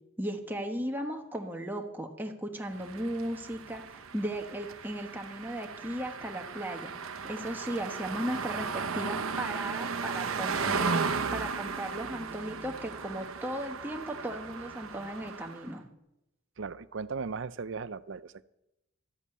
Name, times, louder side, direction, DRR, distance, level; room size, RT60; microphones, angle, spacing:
voice 1, 0.2-6.9 7.2-15.9, right 1 dB, 10° right, 2 dB, 1.2 m, -36 dB
sound 1, 2.7-15.7, right 5 dB, 75° right, 0.9 m, -36 dB
voice 2, 16.6-18.4, right 5 dB, 60° right, 16 dB, 0.5 m, -37 dB
13.0 x 8.5 x 8.6 m, 0.90 s
head